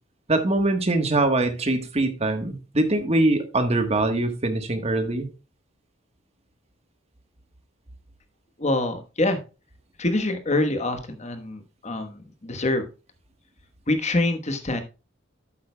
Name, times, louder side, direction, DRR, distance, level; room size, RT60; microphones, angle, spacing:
voice 1, 0.3-5.3, right 2 dB, 30° right, 7 dB, 1.2 m, -23 dB
voice 2, 8.6-9.4 10.0-12.8 13.9-14.8, left 2 dB, 35° left, 8 dB, 1.2 m, -25 dB
11.5 x 8.7 x 2.2 m, 0.30 s
head